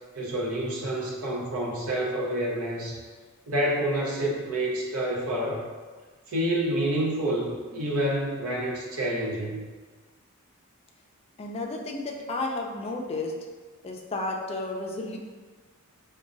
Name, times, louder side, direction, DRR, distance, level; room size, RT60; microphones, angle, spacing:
voice 1, 0.2-3.0 3.5-5.7 6.3-9.6, right 1 dB, 75° right, -3 dB, 0.7 m, -28 dB
voice 2, 11.4-13.3 13.8-15.2, left 2 dB, 30° left, 1 dB, 0.4 m, -32 dB
4.8 x 2.2 x 2.5 m, 1.4 s
head